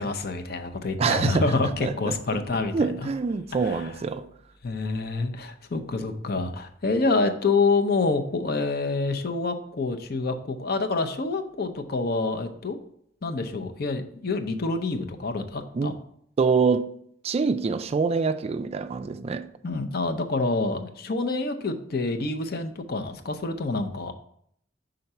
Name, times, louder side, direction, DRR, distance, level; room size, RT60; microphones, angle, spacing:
voice 1, 0.0-3.1 3.6-3.9 4.6-12.8 13.2-15.9 19.6-24.1, left 3 dB, 55° left, 0.6 m, -27 dB
voice 2, 1.0-2.4 2.7-4.3 15.7-15.9 16.4-16.9 17.2-19.5, right 5 dB, 35° right, 0.3 m, -25 dB
5.8 x 3.8 x 5.4 m
head